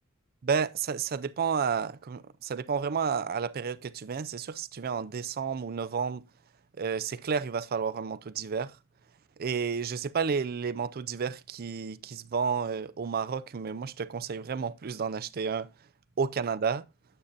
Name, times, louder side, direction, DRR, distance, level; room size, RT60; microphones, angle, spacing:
voice 1, 0.4-6.2 6.8-8.7 9.4-15.7 16.2-16.8, right 6 dB, 45° right, 0.4 m, -31 dB
9.9 x 8.8 x 2.6 m
head